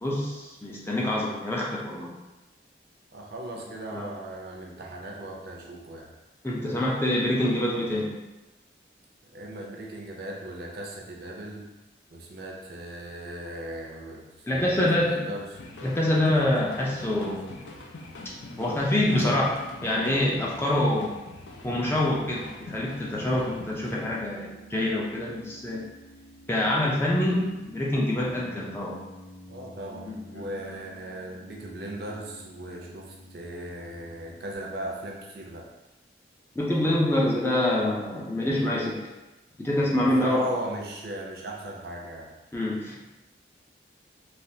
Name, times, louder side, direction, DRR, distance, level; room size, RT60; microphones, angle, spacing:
voice 1, 0.0-2.2 3.9-4.1 6.4-8.2 14.4-15.2 15.8-17.5 18.6-19.5 19.8-21.2 21.6-25.9 26.5-29.0 30.1-30.5 36.6-39.0 39.6-40.5 42.5-43.0, left 1 dB, 15° left, -4 dB, 0.4 m, -26 dB
voice 2, 3.1-6.1 9.3-11.7 12.1-15.6 19.1-19.4 29.5-35.7 39.9-42.3, right 1 dB, 55° right, -1 dB, 0.5 m, -38 dB
sound 1, 15.5-24.2, left 2 dB, 85° left, 0.4 m, -43 dB
Piano, 22.1-34.6, equal, 50° left, 1.0 m, -50 dB
3.2 x 2.3 x 2.7 m, 1.0 s
head